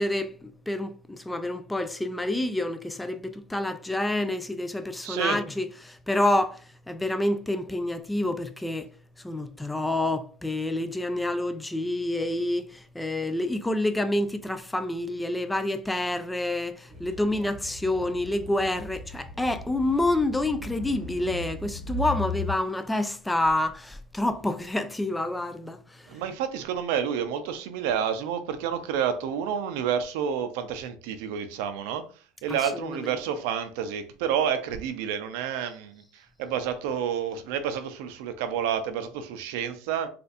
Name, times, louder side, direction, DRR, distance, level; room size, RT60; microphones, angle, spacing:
voice 1, 0.0-8.9 9.2-25.8 32.7-33.0, left 1 dB, 5° left, 0.3 m, -28 dB
voice 2, 5.0-5.4 26.1-32.1 32.4-40.1, right 8 dB, 75° right, 0.5 m, -29 dB
sound 1, 16.9-22.5, left 3 dB, 15° right, 0.9 m, -37 dB
4.2 x 2.5 x 2.4 m
supercardioid pair, 130°, 0 cm